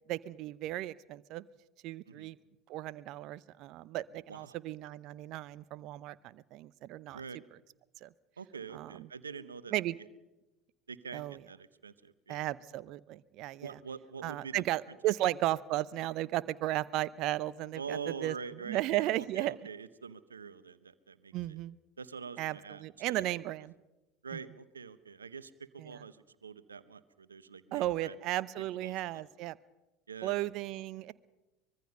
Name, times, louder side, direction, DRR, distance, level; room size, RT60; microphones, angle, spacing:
voice 1, 0.1-1.5 1.8-2.4 2.7-7.2 8.0-8.1 8.7-9.1 9.7-10.0 11.1-11.4 12.3-13.8 14.2-18.3 18.6-19.6 21.3-21.7 22.4-23.7 24.3-24.4 25.8-26.0 27.7-29.6 30.2-31.1, right 15 dB, 55° right, 18 dB, 0.7 m, -35 dB
voice 2, 8.4-9.7 10.9-12.4 13.6-14.6 15.0-15.1 17.8-21.6 22.0-23.3 24.2-28.2 28.8-29.2 30.1-30.4 30.7-30.8, right 6 dB, 90° right, 15 dB, 0.9 m, -45 dB
24.5 x 21.5 x 5.5 m, 1.0 s
hypercardioid pair, 70°, 0 cm